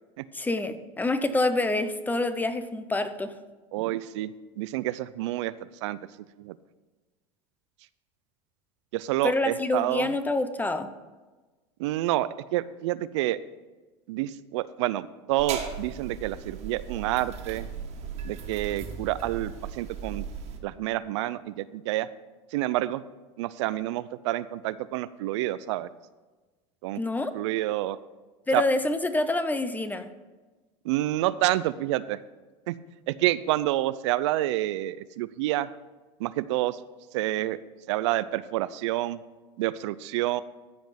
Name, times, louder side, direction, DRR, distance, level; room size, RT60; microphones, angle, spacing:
voice 1, 0.3-3.3 9.2-10.9 27.0-27.3 28.5-30.1, left 2 dB, 10° left, 11 dB, 0.8 m, -27 dB
voice 2, 3.7-5.5 5.8-6.0 6.4-6.6 8.9-10.1 11.8-13.4 14.1-17.7 18.2-20.2 20.6-22.1 22.5-23.0 23.4-25.9 26.8-27.0 27.3-28.0 28.5-28.6 30.8-32.2 32.7-32.8 33.1-35.7 36.2-36.8 37.1-37.6 37.9-39.2 39.6-40.4, right 15 dB, 80° right, 16 dB, 0.5 m, -28 dB
sound 1, 15.4-20.6, right 6 dB, 50° right, 1.8 m, -37 dB
14.5 x 5.2 x 5.9 m, 1.2 s
supercardioid pair, 105°, 15 cm